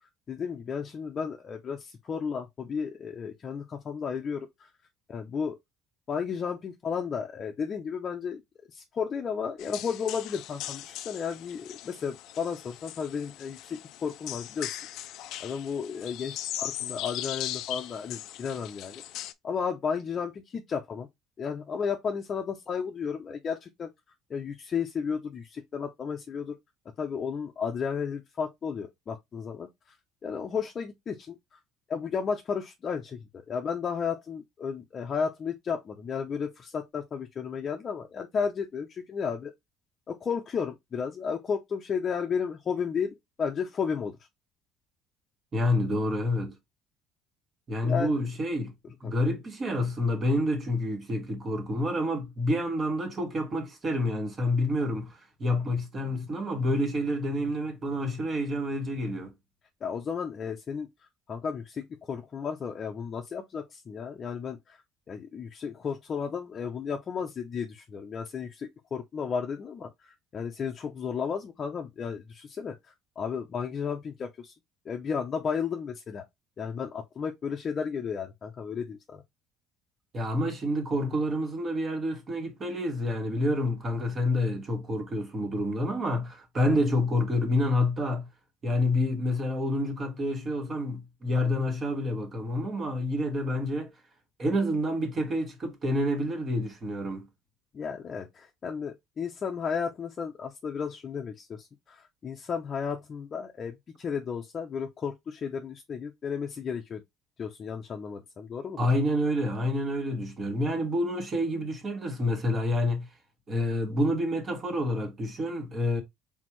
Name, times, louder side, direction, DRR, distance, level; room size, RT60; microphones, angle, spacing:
voice 1, 0.3-4.7 5.1-5.6 6.1-8.4 8.7-14.7 15.1-19.0 19.4-21.1 21.4-23.9 24.3-26.5 27.0-29.7 30.2-31.6 31.9-33.2 33.5-39.5 40.1-44.2 47.8-48.2 49.0-49.1 59.8-60.9 61.3-64.8 65.1-72.8 73.2-74.5 74.9-76.3 76.6-79.2 86.7-86.8 97.7-107.0 107.4-108.9, left 6 dB, 35° left, 0.7 m, -33 dB
Fuente Robin., 9.6-19.3, left 13 dB, 70° left, 0.5 m, -39 dB
voice 2, 45.5-46.5 47.7-48.7 49.0-59.3 80.1-88.3 88.6-93.9 94.4-97.3 108.8-113.1 113.5-116.0, left 1 dB, 30° right, 1.6 m, -28 dB
4.2 x 3.6 x 3.0 m
cardioid pair, 125°, 0 cm